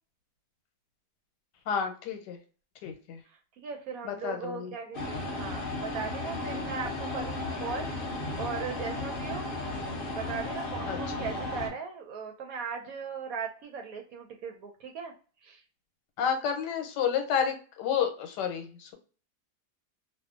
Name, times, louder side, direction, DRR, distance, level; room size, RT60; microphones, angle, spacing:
voice 1, 1.7-2.4 2.8-3.2 4.0-4.7 5.1-5.2 10.9-11.0 16.2-18.9, left 7 dB, 85° left, 5 dB, 1.3 m, -30 dB
voice 2, 3.6-9.5 10.1-15.1 15.4-15.6, right 6 dB, 70° right, 4 dB, 0.9 m, -38 dB
sound 1, 4.9-11.7, left 2 dB, 55° left, 0.5 m, -34 dB
2.6 x 2.4 x 2.3 m, 0.38 s
omnidirectional pair, 1.8 m